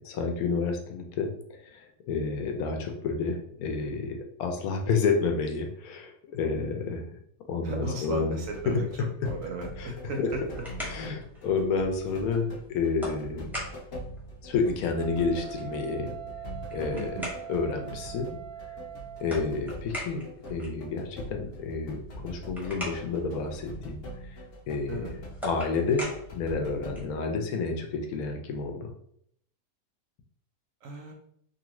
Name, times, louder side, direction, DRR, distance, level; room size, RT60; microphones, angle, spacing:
voice 1, 0.1-1.3 1.6-7.1 7.5-8.4 8.7-8.8 9.8-9.9 10.2-10.3 10.9-13.5 14.4-16.1 16.7-17.2 17.5-18.4 19.2-20.2 20.5-24.0 24.2-24.4 24.7-25.0 25.4-28.9, left 4 dB, 75° left, 3 dB, 1.0 m, -30 dB
voice 2, 7.6-10.4 16.9-17.3 24.9-25.1 30.8-31.1, right 2 dB, 70° right, 1 dB, 0.8 m, -36 dB
sound 1, 8.4-27.1, equal, 55° left, 0.7 m, -43 dB
sound 2, 10.2-27.2, equal, ahead, 0.5 m, -43 dB
Wind instrument woodwind instrument, 14.9-19.6, right 11 dB, 85° right, 1.1 m, -42 dB
2.7 x 2.5 x 2.9 m, 0.68 s
omnidirectional pair, 1.6 m